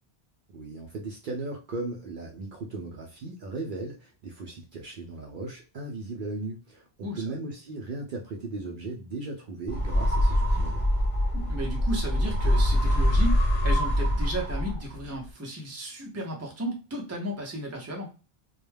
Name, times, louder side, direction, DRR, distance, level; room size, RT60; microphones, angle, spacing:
voice 1, 0.5-10.9, right 2 dB, 60° right, 0 dB, 0.6 m, -37 dB
voice 2, 7.0-7.4 11.3-18.1, right 1 dB, 20° right, 1 dB, 0.6 m, -34 dB
sound 1, 9.7-15.0, equal, 35° left, 0.7 m, -24 dB
2.2 x 2.2 x 3.2 m, 0.32 s
omnidirectional pair, 1.0 m